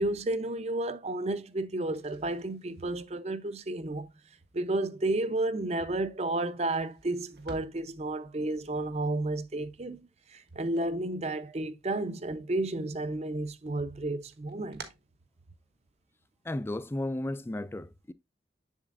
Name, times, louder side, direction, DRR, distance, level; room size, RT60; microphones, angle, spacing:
voice 1, 0.0-4.1 4.5-14.8, right 2 dB, 35° right, 0.6 m, -32 dB
sound 1, 1.9-11.8 12.1-13.0 13.4-16.0, right 3 dB, 65° right, 1.4 m, -54 dB
voice 2, 16.4-18.1, left 1 dB, 15° left, 0.3 m, -34 dB
7.3 x 7.2 x 2.4 m
head